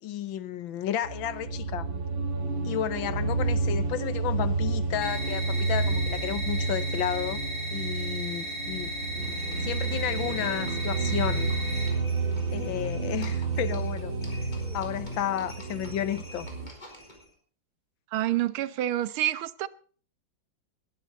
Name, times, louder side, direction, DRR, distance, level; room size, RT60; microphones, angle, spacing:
voice 1, 0.0-1.9 2.6-7.4 7.7-11.5 12.5-14.2 14.7-16.5, left 11 dB, 75° left, 1.6 m, -32 dB
sound 1, 1.0-16.7, right 3 dB, 65° right, 3.0 m, -30 dB
sound 2, 5.0-11.9, equal, 45° left, 6.8 m, -36 dB
Livestock farm animals working animals, 9.2-17.3, left 1 dB, 20° left, 3.9 m, -47 dB
voice 2, 18.1-19.7, right 13 dB, 90° right, 1.7 m, -28 dB
20.5 x 11.5 x 3.9 m
omnidirectional pair, 2.3 m